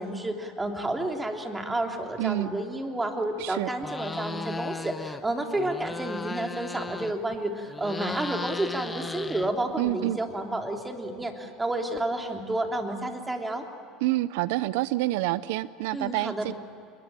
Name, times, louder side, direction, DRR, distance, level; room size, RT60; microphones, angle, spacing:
voice 1, 0.0-13.6 15.9-16.5, right 1 dB, 10° right, 3 dB, 3.3 m, -30 dB
voice 2, 2.2-2.5 3.4-3.7 9.8-10.2 14.0-16.5, right 17 dB, 80° right, 17 dB, 0.5 m, -27 dB
sound 1, 3.8-5.2 5.5-7.3 7.7-9.9, left 3 dB, 15° left, 1.1 m, -36 dB
27.0 x 22.0 x 8.9 m, 2.8 s
supercardioid pair, 110°, 0 cm